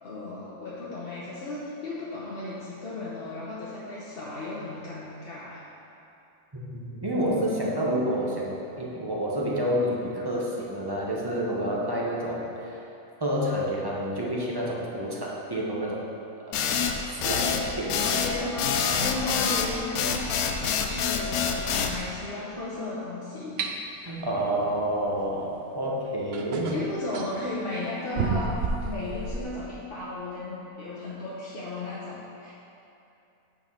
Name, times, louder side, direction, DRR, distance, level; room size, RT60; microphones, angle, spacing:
voice 1, 0.0-5.6 18.0-23.7 26.7-28.6 28.8-32.5, left 2 dB, 45° left, -7 dB, 1.1 m, -35 dB
voice 2, 6.6-12.8 13.2-16.0 16.5-16.7 17.0-18.5 19.1-19.3 24.0-26.8, equal, 20° right, -4 dB, 0.9 m, -29 dB
sound 1, 16.5-22.0, left 7 dB, 80° left, 1.1 m, -26 dB
sound 2, 23.6-23.7 25.6-25.7 26.3-27.4 28.2-29.4, right 4 dB, 60° right, 0.7 m, -30 dB
8.8 x 4.4 x 5.5 m, 2.8 s
omnidirectional pair, 1.5 m